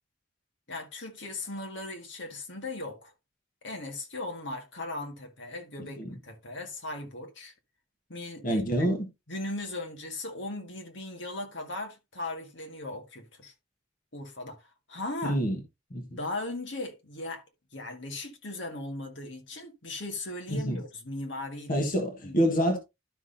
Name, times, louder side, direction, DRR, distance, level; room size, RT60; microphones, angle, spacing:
voice 1, 0.7-3.1 3.6-7.5 8.1-8.9 9.3-13.5 14.1-15.4 16.1-17.4 17.7-21.9 22.2-22.4, left 2 dB, 65° left, 1.9 m, -38 dB
voice 2, 5.8-6.1 8.4-9.1 15.2-15.6 15.9-16.1 20.5-20.8 21.7-22.8, equal, 45° left, 1.5 m, -27 dB
12.5 x 6.0 x 2.7 m
head